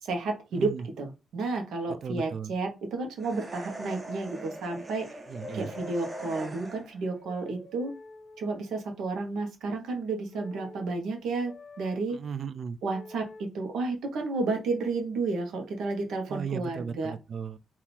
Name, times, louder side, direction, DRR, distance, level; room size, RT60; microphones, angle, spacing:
voice 1, 0.0-5.1 5.5-7.9 8.4-12.2 12.8-17.1, right 3 dB, 80° right, 1.4 m, -31 dB
voice 2, 0.5-0.9 1.9-2.5 5.3-5.7 12.1-12.8 16.3-17.6, right 6 dB, 40° right, 0.3 m, -36 dB
sound 1, 3.2-7.1, right 1 dB, 20° right, 0.8 m, -41 dB
sound 2, 5.4-6.5 7.0-8.8 10.3-10.9 11.5-12.0 12.9-13.5 14.4-14.7, left 3 dB, 40° left, 0.6 m, -47 dB
3.7 x 2.9 x 4.4 m
wide cardioid pair, 180°, 0 cm